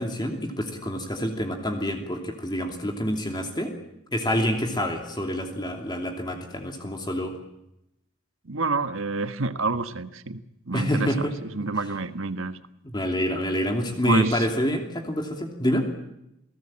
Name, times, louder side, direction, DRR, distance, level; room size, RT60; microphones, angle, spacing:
voice 1, 0.0-3.7 4.1-7.3 10.7-11.3 12.8-15.9, equal, 20° left, 3 dB, 2.9 m, -27 dB
voice 2, 8.4-10.4 10.7-12.6 14.0-14.5, right 3 dB, 70° right, 11 dB, 1.5 m, -28 dB
28.5 x 19.0 x 8.8 m, 0.85 s
head